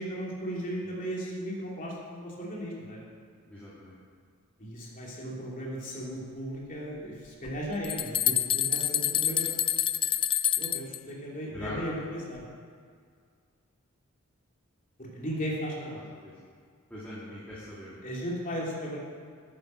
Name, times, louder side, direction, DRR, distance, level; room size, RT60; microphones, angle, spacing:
voice 1, 0.0-3.0 4.6-9.6 10.6-12.4 15.0-16.0 18.0-19.0, equal, 40° left, -4 dB, 2.9 m, -36 dB
voice 2, 3.5-4.0 11.5-12.0 16.2-16.3 16.9-18.1, left 1 dB, 5° left, -11 dB, 2.4 m, -41 dB
sound 1, 7.5-7.6 7.8-11.0, left 10 dB, 25° left, 0.3 m, -27 dB
9.6 x 9.4 x 6.3 m, 2.1 s
head